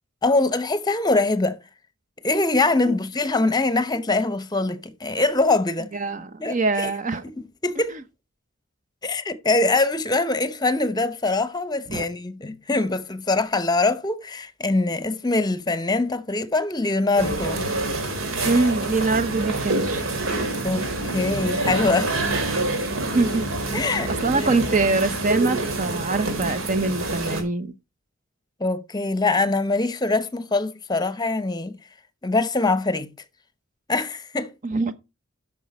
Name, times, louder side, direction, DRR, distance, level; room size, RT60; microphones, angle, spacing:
voice 1, 0.2-1.6 2.2-5.9 6.4-6.9 7.2-8.0 9.0-17.7 20.6-22.1 23.7-24.1 28.6-31.8 32.2-33.1 33.9-34.5, left 2 dB, 20° left, 0.8 m, -23 dB
voice 2, 5.9-7.3 7.8-8.0 11.9-12.1 18.4-20.1 23.1-23.5 24.1-27.7 34.6-35.0, right 3 dB, 40° right, 0.7 m, -24 dB
sound 1, 17.2-27.4, right 2 dB, 80° right, 2.4 m, -26 dB
9.1 x 6.2 x 4.3 m
head